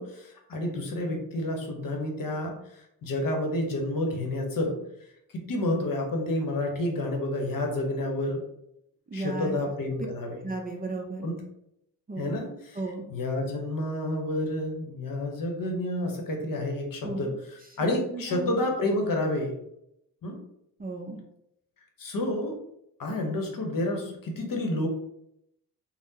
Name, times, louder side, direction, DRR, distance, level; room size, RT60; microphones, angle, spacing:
voice 1, 0.0-4.8 5.3-8.4 9.1-10.4 11.2-11.4 12.2-12.8 13.1-19.6 20.2-20.4 22.0-22.6 23.0-24.9, left 1 dB, 50° left, 2 dB, 0.9 m, -30 dB
voice 2, 9.1-9.6 10.4-11.3 12.1-12.3 12.8-13.0 17.0-17.3 17.8-18.5 20.8-21.2, right 2 dB, 20° right, 2 dB, 0.5 m, -35 dB
3.4 x 2.1 x 2.8 m, 0.79 s
supercardioid pair, 45°, 42 cm